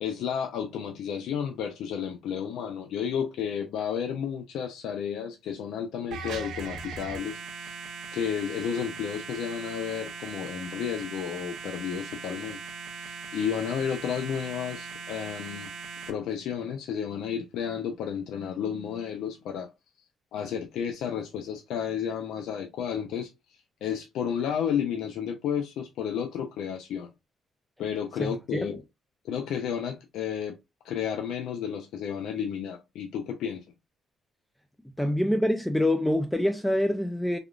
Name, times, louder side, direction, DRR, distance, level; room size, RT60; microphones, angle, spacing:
voice 1, 0.0-7.8 8.1-12.6 13.0-15.7 16.1-19.7 20.3-23.3 23.8-27.1 27.8-28.8 29.2-30.6 30.8-33.6, left 8 dB, 85° left, 0.5 m, -32 dB
sound 1, 6.1-16.1, right 4 dB, 80° right, 0.6 m, -40 dB
voice 2, 35.0-37.4, left 1 dB, 5° left, 0.3 m, -25 dB
3.4 x 2.3 x 2.3 m
cardioid pair, 90°, 0 cm